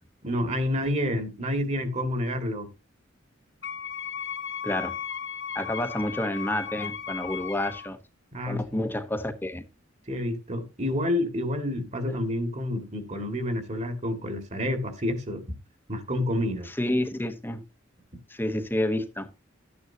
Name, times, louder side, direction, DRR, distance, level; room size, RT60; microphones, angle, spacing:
voice 1, 0.2-2.7 8.3-8.8 10.1-15.4 15.9-16.7, left 1 dB, 35° right, 2.1 m, -29 dB
Wind instrument woodwind instrument, 3.6-7.9, left 7 dB, 70° left, 2.6 m, -36 dB
voice 2, 4.6-5.0 5.5-8.0 8.5-9.6 16.7-17.6 18.3-19.3, left 1 dB, 10° left, 1.1 m, -29 dB
12.5 x 9.4 x 2.8 m
head